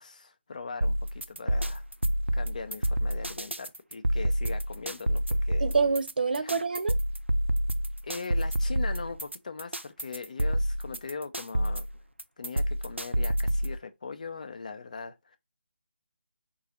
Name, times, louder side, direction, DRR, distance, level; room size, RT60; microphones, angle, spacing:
voice 1, 0.0-1.9 2.3-5.7 6.4-6.6 8.0-11.9 12.4-15.4, left 4 dB, 40° left, 0.5 m, -40 dB
sound 1, 0.8-13.8, equal, 85° right, 0.5 m, -28 dB
voice 2, 5.6-6.9, right 4 dB, 50° right, 0.7 m, -26 dB
4.7 x 2.4 x 4.1 m
figure-of-eight pair, 150°, 6 cm